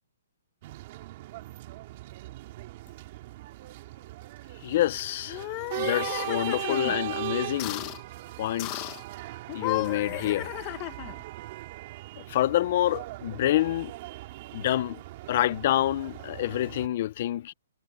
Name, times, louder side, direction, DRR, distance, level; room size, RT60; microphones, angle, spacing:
sound 1, 0.6-16.9, right 17 dB, 40° right, 2.4 m, -39 dB
voice 1, 4.6-5.4 5.8-7.9 8.4-8.9 9.5-10.5 12.2-13.9 14.5-15.0 15.3-17.5, left 13 dB, 40° left, 0.7 m, -27 dB
sound 2, 5.3-7.0 7.6-8.0 8.6-9.0 9.5-11.2, left 21 dB, 25° left, 1.6 m, -34 dB
hypercardioid pair, 160°, 0 cm